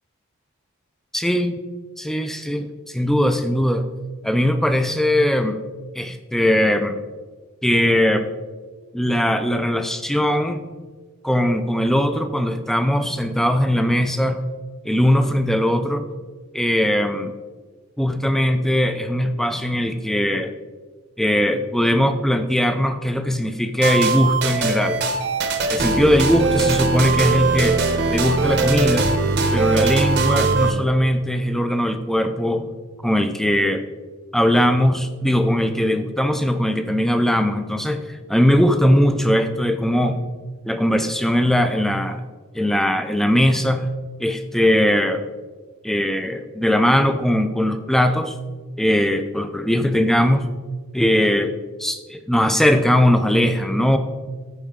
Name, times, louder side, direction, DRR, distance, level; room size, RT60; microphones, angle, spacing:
voice 1, 1.1-1.6 2.0-3.9 4.2-5.6 6.0-7.0 7.6-8.3 8.9-10.6 11.2-14.4 14.8-16.0 16.5-17.3 18.0-20.5 21.2-25.0 25.7-27.8 28.1-29.1 29.5-32.7 33.0-33.9 34.3-40.2 40.7-42.2 42.5-43.9 44.2-45.2 45.8-48.3 48.8-50.5 50.9-51.5 51.8-54.0, equal, ahead, 8 dB, 0.4 m, -20 dB
sound 1, 23.8-30.7, right 4 dB, 50° right, 0.8 m, -21 dB
13.5 x 4.7 x 3.6 m, 1.4 s
head